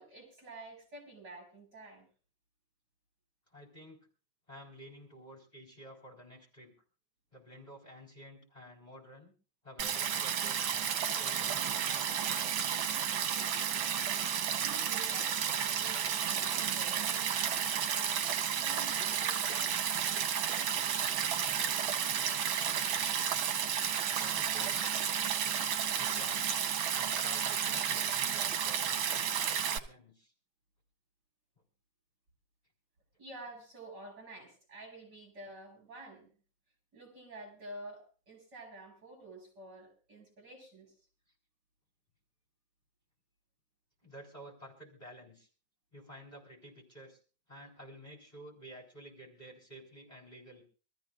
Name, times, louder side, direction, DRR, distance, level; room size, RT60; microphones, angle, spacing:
voice 1, 0.0-2.1 14.6-20.4 33.2-36.3 36.9-40.9, right 2 dB, 55° right, 2 dB, 6.3 m, -50 dB
voice 2, 3.5-4.1 4.5-6.7 7.3-9.3 9.6-11.7 24.1-25.0 26.0-26.6 26.9-30.3 31.6-31.7 44.0-45.5 45.9-47.2 47.5-50.6, equal, 20° left, -1 dB, 3.9 m, -52 dB
Stream, 9.8-29.8, right 8 dB, 90° right, 1.8 m, -32 dB
25.0 x 14.0 x 2.4 m, 0.37 s
omnidirectional pair, 2.1 m